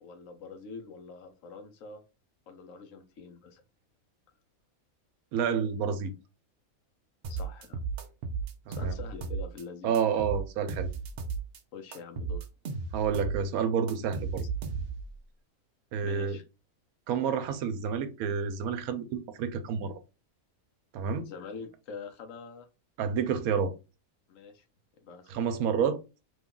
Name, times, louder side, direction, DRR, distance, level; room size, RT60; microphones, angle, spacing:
voice 1, 0.0-2.0 2.5-3.6 7.3-7.8 8.7-9.9 11.7-12.5 16.0-16.4 21.2-22.7 24.3-24.6 25.0-25.3, left 5 dB, 70° left, 1.0 m, -45 dB
voice 2, 5.3-6.1 8.7-9.0 9.8-10.9 12.9-14.4 15.9-16.4 17.1-19.9 20.9-21.3 23.0-23.7 25.3-26.0, right 7 dB, 85° right, 1.0 m, -29 dB
sound 1, 7.2-9.6 9.9-11.6 11.9-15.1, right 5 dB, 60° right, 0.6 m, -34 dB
3.0 x 2.3 x 3.6 m
omnidirectional pair, 1.5 m